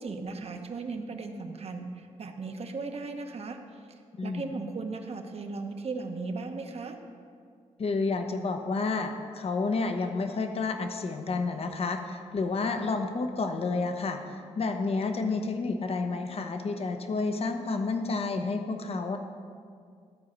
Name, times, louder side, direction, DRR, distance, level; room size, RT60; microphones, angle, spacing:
voice 1, 0.0-3.6 3.9-7.0, right 3 dB, 50° right, 5 dB, 1.0 m, -37 dB
voice 2, 4.2-4.5 7.8-19.2, left 3 dB, 50° left, 6 dB, 0.9 m, -30 dB
13.0 x 4.8 x 6.5 m, 2.2 s
cardioid pair, 75°, 13 cm